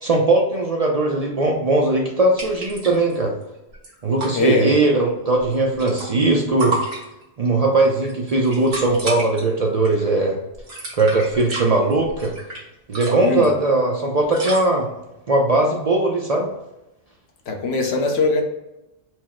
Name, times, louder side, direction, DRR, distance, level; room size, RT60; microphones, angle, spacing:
voice 1, 0.0-3.3 4.0-6.8 7.4-10.4 10.9-12.3 12.9-14.9 15.3-16.5, right 2 dB, 45° right, 0 dB, 0.5 m, -19 dB
sound 1, 2.4-3.2 3.4-3.5 3.7-4.3 5.4-6.3 6.6-7.5 8.0-9.4 9.9-10.1 10.5-12.6 12.9-13.5 14.3-14.7, right 2 dB, 70° right, 1.4 m, -31 dB
voice 2, 4.3-4.8 13.2-13.5 17.5-18.4, left 3 dB, 75° left, 3 dB, 1.0 m, -21 dB
4.6 x 2.0 x 4.2 m, 0.91 s
omnidirectional pair, 1.1 m